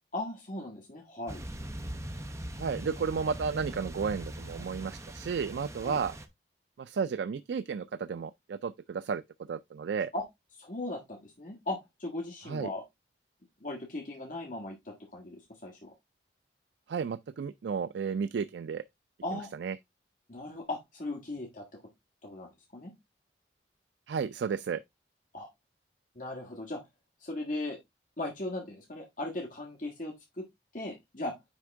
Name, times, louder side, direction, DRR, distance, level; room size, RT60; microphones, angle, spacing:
voice 1, 0.1-1.4 5.8-6.0 10.1-10.2 10.5-12.8 13.6-15.9 19.2-19.5 20.3-21.6 22.2-22.9 25.3-25.5 26.1-26.8 27.2-27.8 28.2-30.4 30.7-31.4, left 2 dB, 45° left, 1.7 m, -38 dB
sound 1, 1.3-6.3, right 1 dB, 15° right, 0.7 m, -41 dB
voice 2, 2.6-6.2 6.8-9.2 9.5-10.1 12.5-12.7 16.9-18.8 19.3-19.8 24.1-24.8, right 6 dB, 70° right, 0.3 m, -33 dB
9.5 x 3.6 x 3.5 m
head